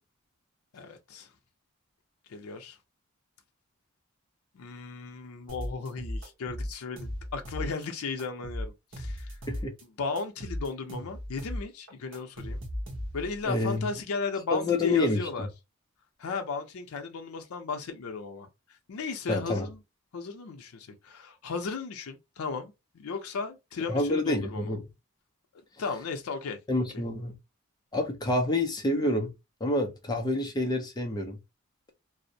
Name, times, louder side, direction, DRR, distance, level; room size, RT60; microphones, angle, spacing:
voice 1, 0.7-1.3 2.3-2.8 4.5-9.4 10.0-12.6 13.1-15.5 16.2-19.8 20.1-24.7 25.8-26.6, left 4 dB, 80° left, 0.4 m, -35 dB
sound 1, 5.5-7.9 8.2-9.8 10.2-13.4, equal, 55° right, 0.9 m, -36 dB
voice 2, 13.5-13.9 14.5-15.2 19.3-19.7 23.9-24.8 26.7-27.4 27.9-29.3 29.6-31.4, left 2 dB, 20° left, 0.4 m, -28 dB
2.5 x 2.0 x 2.6 m
head